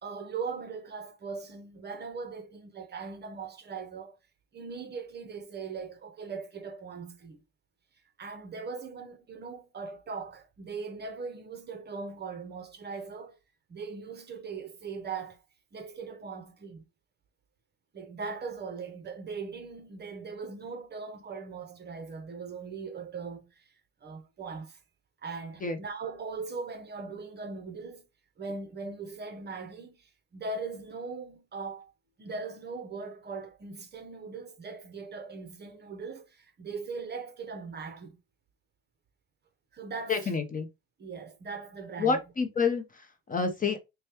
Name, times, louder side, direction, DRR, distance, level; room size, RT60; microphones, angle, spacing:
voice 1, 0.0-4.2 4.5-7.4 8.2-13.4 13.7-15.4 15.7-16.8 17.9-23.7 24.0-24.8 25.2-28.0 28.4-31.9 32.2-38.2 39.7-40.3 41.0-42.2, right 4 dB, 30° right, 0.8 m, -40 dB
voice 2, 40.1-40.7 42.0-43.8, left 5 dB, 25° left, 0.7 m, -28 dB
5.2 x 2.2 x 2.9 m
supercardioid pair, 100°, 34 cm